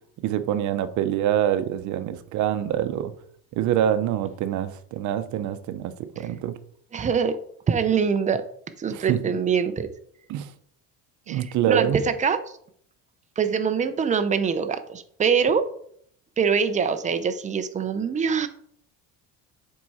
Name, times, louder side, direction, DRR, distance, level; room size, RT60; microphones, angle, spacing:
voice 1, 0.2-3.1 3.6-6.6 8.9-9.2 10.3-10.5 11.3-12.0, right 11 dB, 60° right, 0.7 m, -25 dB
voice 2, 6.9-7.4 7.7-8.4 8.8-9.9 11.3-12.4 13.4-15.7 16.4-18.5, right 6 dB, 20° right, 0.6 m, -24 dB
7.6 x 4.7 x 4.2 m
cardioid pair, 140°, 33 cm